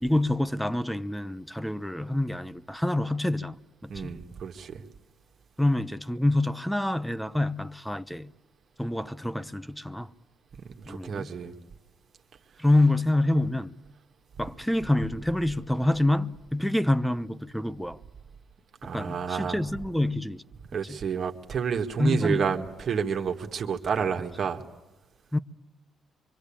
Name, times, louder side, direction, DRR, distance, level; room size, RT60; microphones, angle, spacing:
voice 1, 0.0-3.6 3.8-4.2 5.6-8.3 8.8-10.1 10.9-11.3 12.6-13.7 14.4-18.0 18.8-20.4 20.9-21.0 22.0-22.5 25.3-25.4, left 1 dB, 5° left, 0.8 m, -27 dB
voice 2, 3.9-4.9 10.6-11.5 18.8-19.6 20.7-24.6, right 6 dB, 55° right, 1.9 m, -30 dB
25.0 x 24.5 x 8.7 m
cardioid pair, 90°, 0 cm